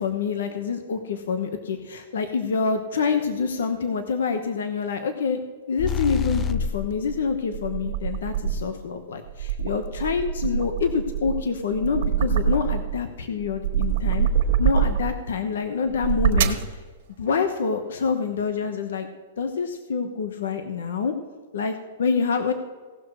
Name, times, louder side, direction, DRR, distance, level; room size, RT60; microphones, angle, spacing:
voice 1, 0.0-5.4 5.7-14.3 14.6-16.6 17.2-19.1 19.4-21.2 21.5-22.5, left 5 dB, 85° left, 8 dB, 1.0 m, -26 dB
sound 1, 5.8-7.0, left 6 dB, 20° left, 0.5 m, -27 dB
sound 2, 6.9-8.8 9.3-13.0 13.4-15.3 15.9-16.7, right 8 dB, 60° right, 1.4 m, -25 dB
17.0 x 6.2 x 4.8 m, 1.5 s
hypercardioid pair, 150°, 0 cm